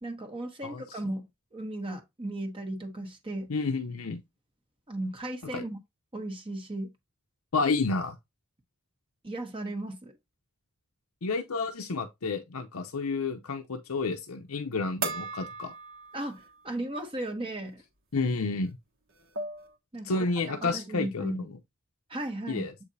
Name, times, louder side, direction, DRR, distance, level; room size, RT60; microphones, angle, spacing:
voice 1, 0.0-3.5 4.9-5.8 6.1-6.9 9.2-10.1 16.1-17.8 19.9-21.5 22.1-22.6, right 1 dB, 25° right, 1.0 m, -36 dB
voice 2, 3.5-4.2 5.5-5.6 7.5-8.1 11.2-15.7 18.1-18.8 20.0-21.5 22.5-22.7, left 3 dB, 90° left, 0.8 m, -30 dB
sound 1, 15.0-16.6 17.0-17.1 18.7-18.8 19.1-19.7, right 3 dB, 65° right, 1.3 m, -37 dB
7.5 x 5.0 x 2.7 m
head